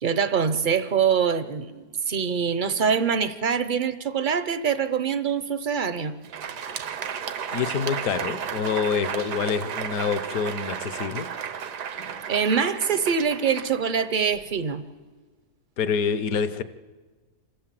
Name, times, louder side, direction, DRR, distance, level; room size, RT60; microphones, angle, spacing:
voice 1, 0.0-6.1 12.3-14.8, right 6 dB, 50° right, 12 dB, 0.6 m, -24 dB
Crowd, 6.1-14.6, right 7 dB, 85° right, 1.6 m, -33 dB
voice 2, 7.5-11.3 15.8-16.6, left 6 dB, 65° left, 13 dB, 1.2 m, -26 dB
26.5 x 13.5 x 7.6 m, 1.3 s
omnidirectional pair, 1.7 m